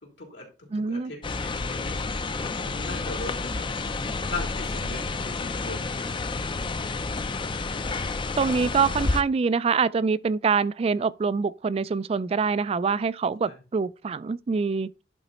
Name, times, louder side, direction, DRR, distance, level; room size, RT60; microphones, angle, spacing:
voice 1, 0.0-2.2 2.7-3.6 4.3-5.9 13.4-13.6, left 3 dB, 75° left, 3.5 m, -39 dB
voice 2, 0.7-1.1 8.4-14.9, right 5 dB, 35° right, 0.3 m, -25 dB
sound 1, 1.2-9.2, left 3 dB, 30° left, 0.5 m, -30 dB
11.0 x 3.9 x 4.3 m
head